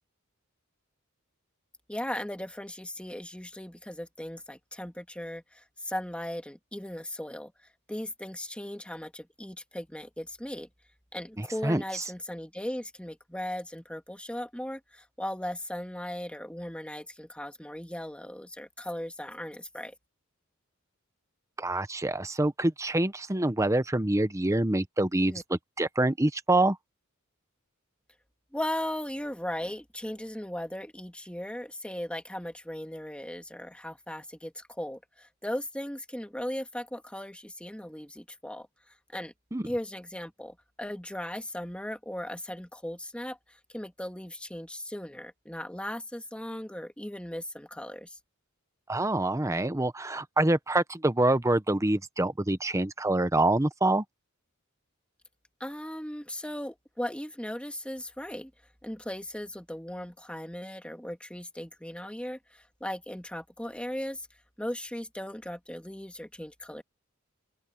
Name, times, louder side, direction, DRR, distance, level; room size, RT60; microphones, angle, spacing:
voice 1, 1.9-7.5 7.9-10.7 11.1-19.9 25.2-25.4 28.5-38.7 39.1-39.3 39.6-48.2 55.6-58.5 58.8-64.2 64.6-66.8, left 1 dB, 5° left, 2.0 m, -37 dB
voice 2, 11.4-12.0 21.6-26.8 39.5-39.7 48.9-54.0, right 2 dB, 15° right, 0.9 m, -26 dB
open air
head